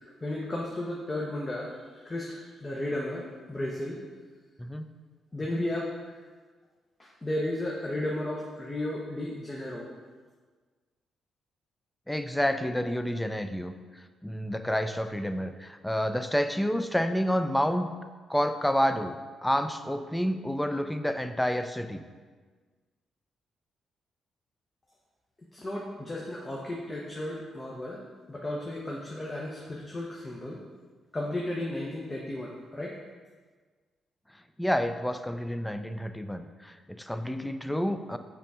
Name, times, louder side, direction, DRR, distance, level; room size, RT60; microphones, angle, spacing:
voice 1, 0.2-1.8 2.0-4.0 5.3-6.2 7.0-9.9 25.5-28.0 28.3-30.6 31.1-33.0, left 1 dB, 25° left, -3 dB, 1.0 m, -34 dB
voice 2, 12.1-13.7 14.2-17.9 18.3-22.0 34.6-38.2, equal, 5° left, 9 dB, 0.4 m, -29 dB
5.8 x 3.5 x 4.9 m, 1.5 s
supercardioid pair, 50°, 0 cm